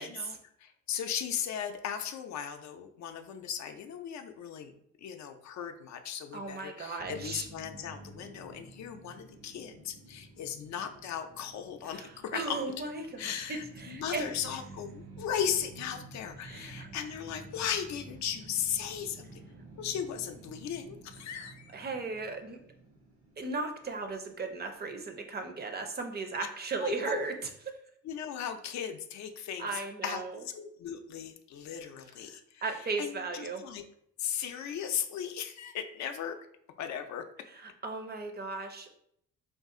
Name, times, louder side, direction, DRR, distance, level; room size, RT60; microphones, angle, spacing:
voice 1, 0.0-4.7 5.0-12.6 13.2-19.4 19.8-21.8 26.8-27.2 28.0-33.8 34.2-36.4 36.8-37.2, left 8 dB, 65° left, 6 dB, 0.4 m, -37 dB
voice 2, 6.3-7.5 11.9-14.3 16.4-16.9 21.7-22.6 23.4-27.3 29.6-30.3 32.6-33.6 37.8-39.0, right 3 dB, 35° right, 4 dB, 0.5 m, -36 dB
sound 1, 7.0-24.2, right 2 dB, 75° right, 1.0 m, -51 dB
2.5 x 2.4 x 3.6 m, 0.70 s
cardioid pair, 90°, 30 cm